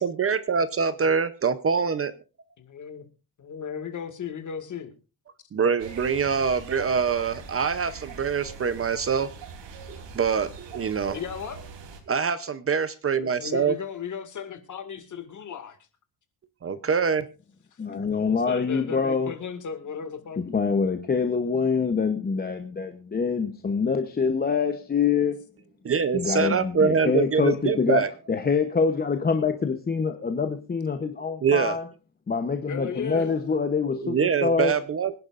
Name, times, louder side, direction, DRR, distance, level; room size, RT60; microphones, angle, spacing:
voice 1, 0.0-2.1 5.5-9.3 9.9-11.2 12.1-13.7 16.6-17.2 25.8-28.1 31.4-31.8 34.0-35.2, right 6 dB, 30° right, 13 dB, 0.7 m, -24 dB
voice 2, 2.7-3.0 3.4-4.9 11.1-11.6 13.2-15.8 17.7-17.8 18.3-20.4 32.7-33.3, left 7 dB, 45° left, 8 dB, 2.1 m, -35 dB
sound 1, 5.8-12.0, right 4 dB, 85° right, 3.4 m, -43 dB
voice 3, 17.8-19.3 20.4-25.4 26.1-31.9 32.3-34.8, left 5 dB, 20° left, 7 dB, 0.9 m, -25 dB
25.0 x 10.5 x 2.5 m, 0.32 s
cardioid pair, 145°, 43 cm